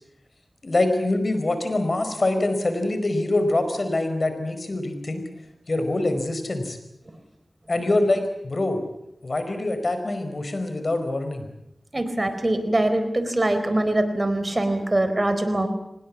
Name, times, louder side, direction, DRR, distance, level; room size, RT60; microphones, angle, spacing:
voice 1, 0.6-5.2 5.7-6.8 7.7-8.8 9.2-11.4, left 2 dB, 60° left, 8 dB, 4.7 m, -24 dB
voice 2, 11.9-15.7, right 1 dB, 35° right, 9 dB, 4.3 m, -23 dB
25.0 x 20.0 x 8.5 m, 0.84 s
cardioid pair, 40°, 0 cm